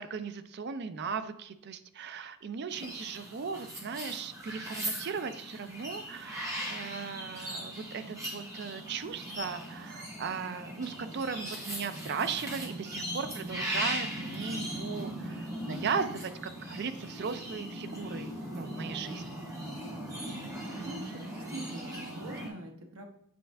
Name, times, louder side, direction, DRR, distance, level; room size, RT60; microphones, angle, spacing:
voice 1, 0.0-19.4, right 5 dB, 50° right, 11 dB, 0.4 m, -37 dB
sound 1, 2.7-22.5, right 1 dB, 15° right, 1.2 m, -39 dB
voice 2, 20.7-23.1, right 2 dB, 75° right, 3 dB, 0.9 m, -44 dB
7.7 x 4.4 x 3.4 m, 0.72 s
head